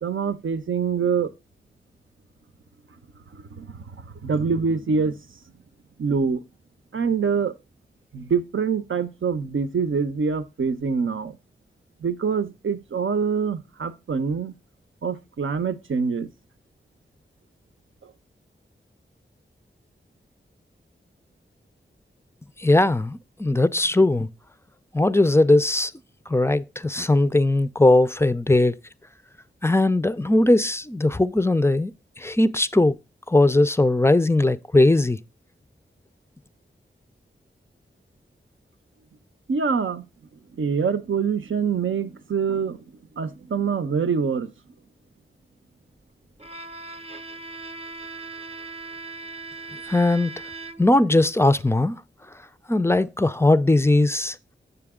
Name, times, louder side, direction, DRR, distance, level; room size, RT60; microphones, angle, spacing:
voice 1, 0.0-1.3 3.3-5.1 6.0-6.4 6.9-7.5 8.1-11.4 12.0-14.5 15.0-16.3 39.5-40.1 40.5-42.8 43.2-44.5, right 5 dB, 75° right, 0.7 m, -25 dB
voice 2, 22.6-24.3 24.9-25.9 26.3-28.7 29.6-31.9 32.2-33.0 33.3-35.2 49.9-50.4 50.8-52.0 52.7-54.4, left 2 dB, 10° left, 0.4 m, -19 dB
Bowed string instrument, 46.4-51.1, right 3 dB, 30° right, 0.7 m, -39 dB
6.9 x 6.8 x 3.6 m
wide cardioid pair, 60°, 21 cm